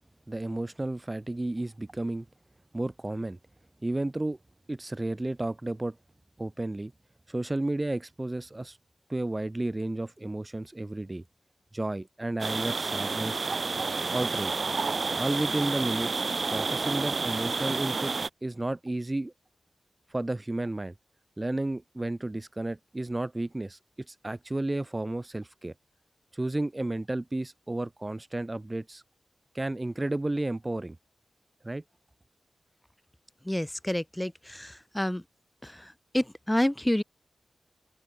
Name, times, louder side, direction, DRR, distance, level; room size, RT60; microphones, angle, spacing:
voice 1, 0.3-2.3 2.7-3.4 3.8-4.4 4.7-6.0 6.4-6.9 7.3-8.8 9.1-11.2 11.7-13.4 14.1-14.6 15.2-18.1 18.4-19.3 20.1-20.9 21.4-23.8 24.1-25.7 26.3-29.0 29.5-31.0 31.6-31.8, right 2 dB, 20° right, 4.3 m, -32 dB
sound 1, 12.4-18.3, right 4 dB, 50° right, 2.1 m, -30 dB
voice 2, 33.4-35.2 35.6-37.0, left 1 dB, 10° left, 6.6 m, -29 dB
open air
wide cardioid pair, 90°, 0 cm